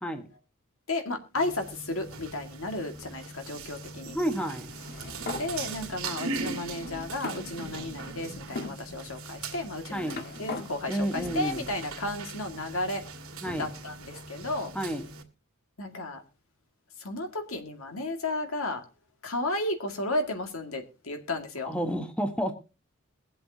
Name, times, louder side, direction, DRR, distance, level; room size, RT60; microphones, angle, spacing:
voice 1, 0.9-4.2 5.4-13.0 13.6-14.7 15.8-16.2 17.0-18.8 19.2-21.7, left 2 dB, 70° left, 5 dB, 2.1 m, -33 dB
sound 1, 1.3-15.2, right 3 dB, 70° right, 2.0 m, -40 dB
voice 2, 4.0-4.7 9.9-10.2 10.9-11.7 13.4-13.6 14.7-15.0 21.6-22.5, equal, 5° left, 5 dB, 1.2 m, -30 dB
sound 2, 4.6-5.5 6.3-6.4 7.2-8.1 8.6-8.8 9.6-10.7, left 3 dB, 50° left, 1.7 m, -38 dB
22.5 x 7.7 x 2.8 m, 0.31 s
head